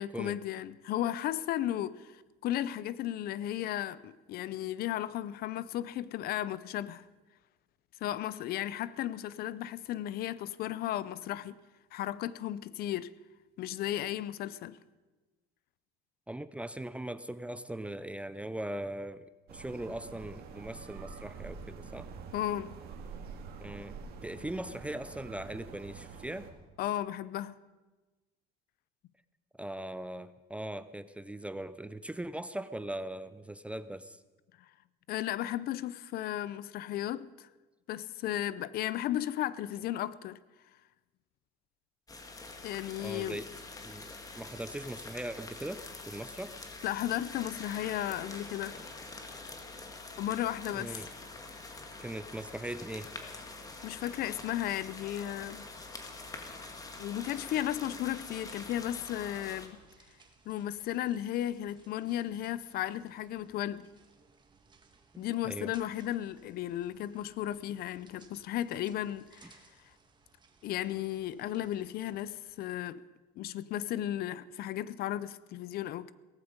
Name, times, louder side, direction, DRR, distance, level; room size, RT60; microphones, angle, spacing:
voice 1, 0.0-7.0 8.0-11.5 11.9-13.1 13.6-14.8 22.3-22.7 26.8-27.6 35.1-37.5 37.9-40.4 42.6-43.4 46.8-48.8 50.2-50.9 53.8-55.7 57.0-59.8 60.5-63.9 65.2-69.6 70.6-73.0 73.4-76.1, left 12 dB, 55° left, 0.6 m, -35 dB
voice 2, 16.3-22.1 23.6-26.5 29.6-34.2 43.0-43.5 43.8-46.6 50.8-51.1 52.0-53.1 65.1-65.7, right 1 dB, 5° right, 0.4 m, -40 dB
sound 1, 19.5-26.5, right 5 dB, 55° right, 2.3 m, -46 dB
sound 2, 42.1-59.7, left 3 dB, 20° left, 1.9 m, -46 dB
sound 3, 57.4-72.7, right 4 dB, 25° right, 1.9 m, -63 dB
17.5 x 15.0 x 5.3 m
cardioid pair, 130°, 19 cm